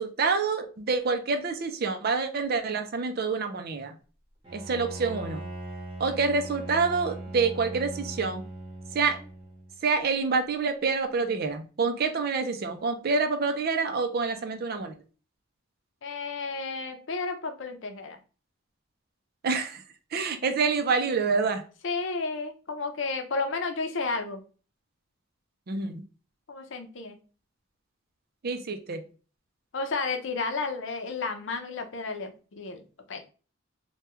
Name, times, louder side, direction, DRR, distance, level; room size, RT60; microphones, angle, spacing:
voice 1, 0.0-3.9 4.5-5.4 6.0-8.4 8.9-9.2 9.8-14.9 19.4-19.8 20.1-21.6 25.7-26.0 28.4-29.0, right 4 dB, 50° right, 7 dB, 0.5 m, -27 dB
Bowed string instrument, 4.4-9.8, right 2 dB, 25° right, 1.0 m, -40 dB
voice 2, 16.0-18.2 21.8-24.4 26.5-27.2 29.7-33.2, left 4 dB, 70° left, 6 dB, 0.6 m, -32 dB
3.4 x 2.2 x 2.9 m, 0.36 s
head